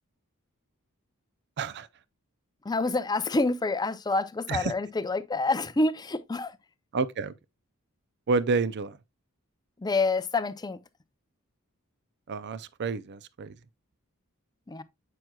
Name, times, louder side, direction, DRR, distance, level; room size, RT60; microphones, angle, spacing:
voice 1, 1.6-1.9 4.5-4.7 6.9-7.3 8.3-8.9 12.3-13.5, right 4 dB, 50° right, 0.5 m, -29 dB
voice 2, 2.7-6.5 9.8-10.8 14.7-14.8, left 3 dB, 20° left, 0.5 m, -27 dB
7.8 x 6.0 x 2.3 m
head